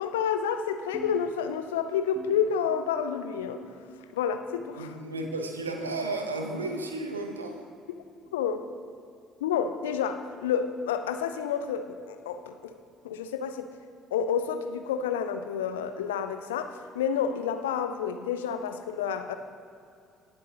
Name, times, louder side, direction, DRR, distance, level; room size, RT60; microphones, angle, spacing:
voice 1, 0.0-3.6 4.1-5.0 8.3-8.7 9.4-12.7 13.0-13.8 14.1-19.4, left 7 dB, 75° left, 8 dB, 0.5 m, -29 dB
sound 1, 0.9-1.8 2.2-3.0 3.4-4.0 4.6-5.2 5.8-6.2 7.0-7.3 8.3-8.5 9.5-9.7 10.7-10.9 11.9-12.1 13.1-13.3 14.4-14.5 15.6-15.7, right 2 dB, 25° right, 2.1 m, -48 dB
voice 2, 4.8-7.6, right 2 dB, 85° right, 4 dB, 0.9 m, -33 dB
18.5 x 7.4 x 2.9 m, 2.5 s
figure-of-eight pair, 50°, 0 cm